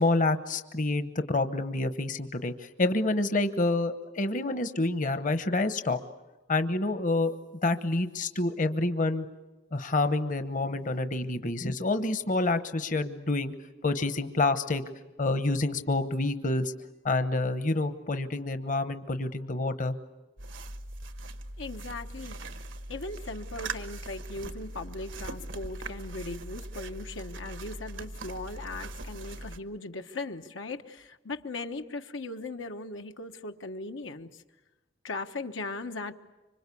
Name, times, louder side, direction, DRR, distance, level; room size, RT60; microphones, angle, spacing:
voice 1, 0.0-6.0 6.5-7.3 7.6-9.3 9.7-13.5 13.8-14.8 15.2-16.7 17.0-19.9, left 2 dB, 45° left, 10 dB, 1.0 m, -28 dB
sound 1, 20.4-29.6, right 2 dB, 85° right, 1.4 m, -40 dB
voice 2, 21.6-22.4 22.9-34.3 35.0-36.1, left 2 dB, 85° left, 5 dB, 1.2 m, -38 dB
26.0 x 24.5 x 8.5 m, 1.1 s
head